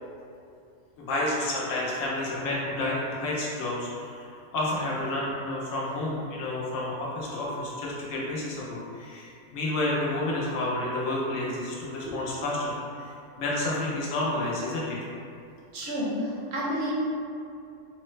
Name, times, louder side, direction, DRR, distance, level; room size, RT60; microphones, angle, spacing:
voice 1, 1.0-4.2 4.5-12.8 13.4-15.0, left 1 dB, 85° left, -5 dB, 1.1 m, -30 dB
voice 2, 15.7-16.9, equal, 60° right, -6 dB, 1.0 m, -30 dB
3.3 x 2.0 x 3.1 m, 2.5 s
omnidirectional pair, 1.3 m